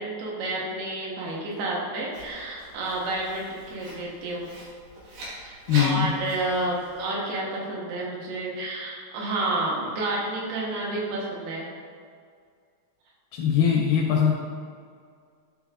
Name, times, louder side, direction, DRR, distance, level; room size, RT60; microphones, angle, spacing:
voice 1, 0.0-4.5 5.4-11.7, right 2 dB, 75° right, -4 dB, 3.4 m, -30 dB
Writing, 2.1-7.1, right 1 dB, 60° right, 3.0 m, -41 dB
voice 2, 5.7-6.1 13.3-14.3, left 8 dB, 80° left, -1 dB, 2.3 m, -21 dB
11.5 x 3.8 x 3.6 m, 2.1 s
omnidirectional pair, 4.8 m